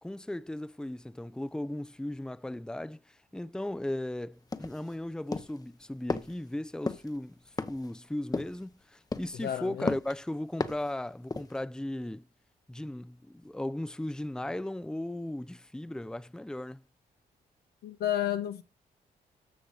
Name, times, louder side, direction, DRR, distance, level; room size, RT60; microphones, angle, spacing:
voice 1, 0.0-7.4 7.7-12.2 12.7-16.8, left 1 dB, 5° left, 0.6 m, -36 dB
sound 1, 4.5-4.9 5.3-5.6 6.1-6.3 6.9-7.1 7.6-7.9 8.3-8.6 9.1-9.4 9.9-10.2 10.6-10.9 11.3-11.6, left 3 dB, 25° left, 1.0 m, -34 dB
voice 2, 9.4-9.9 17.8-18.6, left 11 dB, 90° left, 1.1 m, -31 dB
13.5 x 6.2 x 5.6 m
cardioid pair, 75°, 16 cm